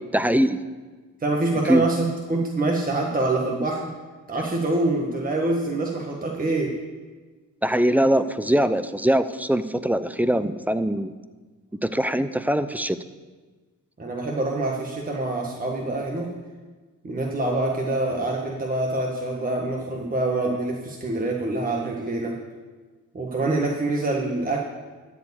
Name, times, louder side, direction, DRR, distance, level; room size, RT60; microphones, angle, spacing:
voice 1, 0.1-0.6 1.7-1.8 7.6-11.1 11.8-13.0, right 1 dB, 5° right, 13 dB, 0.5 m, -22 dB
voice 2, 1.2-3.9 4.3-6.8 14.0-16.3 17.0-22.4 23.1-24.6, right 2 dB, 25° right, -1 dB, 1.6 m, -25 dB
13.0 x 4.9 x 8.5 m, 1.3 s
cardioid pair, 80°, 34 cm